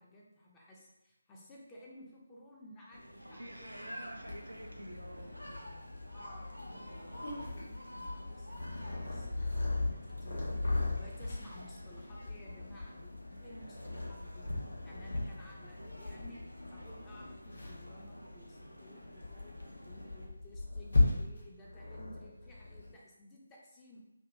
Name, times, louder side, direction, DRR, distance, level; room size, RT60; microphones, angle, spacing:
voice 1, 0.0-4.4 6.1-14.5 14.8-24.0, equal, 10° left, -3 dB, 0.5 m, -56 dB
sound 1, 2.9-20.3, equal, 85° left, 0.6 m, -51 dB
voice 2, 3.4-5.9 15.0-15.2, right 1 dB, 75° right, 4 dB, 0.4 m, -49 dB
Purr, 4.2-22.9, left 2 dB, 55° left, 1.0 m, -37 dB
3.4 x 2.2 x 2.6 m, 0.91 s
figure-of-eight pair, 150°, 0 cm